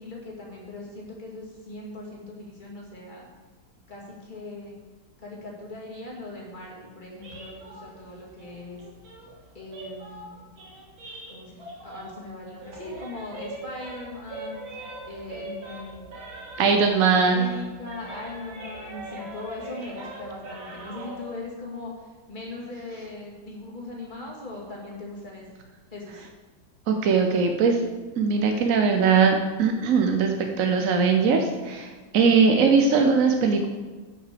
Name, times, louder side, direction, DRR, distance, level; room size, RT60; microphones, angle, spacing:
voice 1, 0.0-3.3 3.9-4.7 5.2-8.8 9.5-10.4 11.1-14.6 15.1-16.1 16.6-25.5 25.9-26.3, left 2 dB, 25° left, -4 dB, 2.6 m, -39 dB
sound 1, 7.2-12.3 12.6-17.1 17.3-21.2, right 1 dB, 80° right, 2.8 m, -41 dB
voice 2, 16.6-17.5 26.9-27.8 28.2-33.7, right 5 dB, 60° right, 4 dB, 0.9 m, -20 dB
9.9 x 5.9 x 6.7 m, 1.3 s
omnidirectional pair, 2.1 m